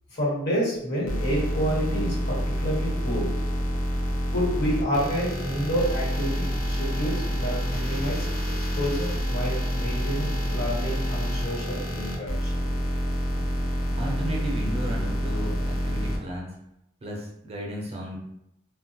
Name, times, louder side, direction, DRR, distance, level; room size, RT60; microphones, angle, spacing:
voice 1, 0.1-3.3 4.3-12.5, equal, 50° left, -5 dB, 1.2 m, -29 dB
sound 1, 1.1-16.2, equal, 75° left, 0.7 m, -27 dB
voice 2, 14.0-16.5 17.0-18.2, equal, 30° right, -2 dB, 0.5 m, -34 dB
3.3 x 2.2 x 2.8 m, 0.82 s
head